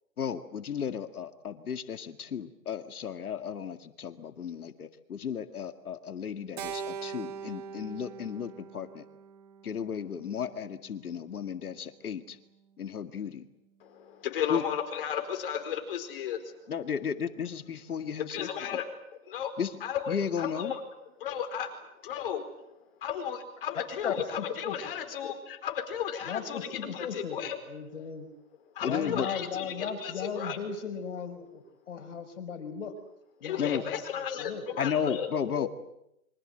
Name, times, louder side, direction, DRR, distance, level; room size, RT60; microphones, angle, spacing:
voice 1, 0.2-9.1 9.6-12.4 12.8-13.5 14.5-14.6 16.7-18.8 19.6-19.7 20.1-20.7 28.8-29.3 33.6-33.8 34.8-35.7, left 7 dB, 80° left, 9 dB, 2.1 m, -34 dB
Keyboard (musical), 6.6-11.0, right 7 dB, 30° right, 1.5 m, -42 dB
voice 2, 13.8-16.5 18.3-18.9 19.3-19.5 19.8-20.8 21.2-21.7 22.0-22.5 23.0-27.6 28.7-30.6 33.4-35.3 35.5-35.7, left 8 dB, 40° left, 6 dB, 4.6 m, -34 dB
voice 3, 24.0-24.7 26.2-27.4 27.7-28.3 28.8-32.9 33.4-34.0 34.4-34.7, left 6 dB, 55° left, 6 dB, 5.4 m, -36 dB
28.5 x 24.5 x 7.9 m, 0.81 s
hypercardioid pair, 170°, 43 cm